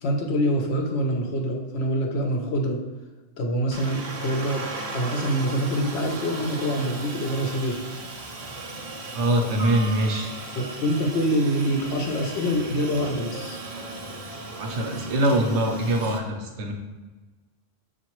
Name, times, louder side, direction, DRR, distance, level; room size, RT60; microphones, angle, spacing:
voice 1, 0.0-2.8 3.4-4.7 4.9-7.8 10.6-13.6, equal, 70° left, 3 dB, 0.8 m, -25 dB
Aircraft, 3.7-16.2, right 2 dB, 55° right, 0.4 m, -36 dB
voice 2, 9.1-10.3 14.6-16.7, right 1 dB, 75° right, 2 dB, 1.0 m, -23 dB
5.6 x 2.5 x 3.0 m, 1.3 s
omnidirectional pair, 1.2 m